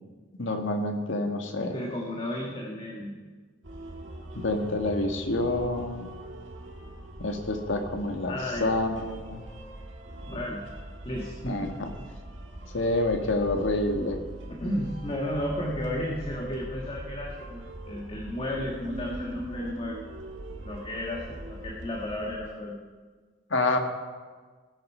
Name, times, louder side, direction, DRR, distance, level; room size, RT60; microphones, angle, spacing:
voice 1, 0.3-1.7 4.3-6.1 7.2-9.4 11.4-11.9 12.7-14.2 23.5-23.8, left 2 dB, 75° left, 5 dB, 1.6 m, -28 dB
voice 2, 1.7-3.1 8.3-8.7 10.3-10.6 11.0-11.7 14.5-20.0 20.6-22.8, left 1 dB, 30° left, -1 dB, 1.5 m, -33 dB
sound 1, 3.6-22.4, right 1 dB, 75° right, 1.8 m, -41 dB
18.5 x 8.1 x 5.5 m, 1.5 s
head